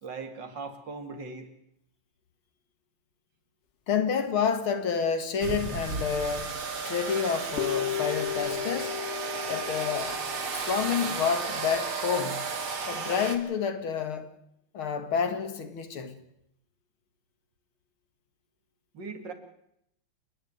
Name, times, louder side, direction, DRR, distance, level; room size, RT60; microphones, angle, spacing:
voice 1, 0.0-1.5 18.9-19.3, right 4 dB, 55° right, 3.1 m, -39 dB
voice 2, 3.9-6.5 6.9-9.0 9.5-10.2 10.6-12.4 12.9-14.3 14.7-16.2, left 6 dB, 70° left, 2.7 m, -29 dB
sound 1, 5.4-13.4, right 5 dB, 70° right, 3.1 m, -34 dB
sound 2, 7.6-11.6, left 14 dB, 35° left, 1.4 m, -35 dB
30.0 x 11.0 x 9.5 m
omnidirectional pair, 2.4 m